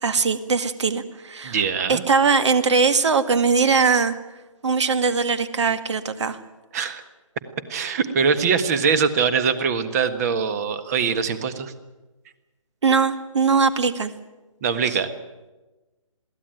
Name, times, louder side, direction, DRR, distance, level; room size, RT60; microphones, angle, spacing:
voice 1, 0.0-1.6 1.9-4.2 4.6-6.4 12.8-14.1, right 5 dB, 55° right, 11 dB, 2.0 m, -20 dB
voice 2, 1.4-2.0 6.7-7.0 7.7-11.7 14.6-15.1, right 6 dB, 30° right, 11 dB, 1.5 m, -22 dB
22.5 x 16.0 x 9.2 m, 1.1 s
figure-of-eight pair, 155°, 17 cm